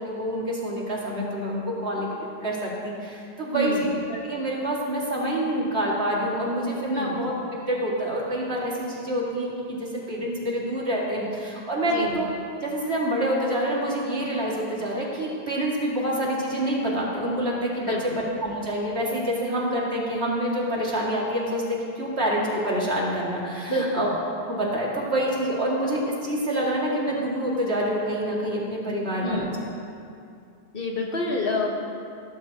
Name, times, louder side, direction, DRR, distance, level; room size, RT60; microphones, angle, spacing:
voice 1, 0.1-7.3 7.7-12.3 12.6-18.1 18.4-24.1 24.5-29.6, right 1 dB, 75° right, -4 dB, 2.5 m, -27 dB
voice 2, 3.5-3.9 6.9-7.3 11.9-12.2 17.9-18.2 23.7-24.1 29.2-29.5 30.7-31.7, left 1 dB, 55° left, 0 dB, 1.6 m, -28 dB
17.0 x 13.0 x 2.9 m, 2.5 s
omnidirectional pair, 1.1 m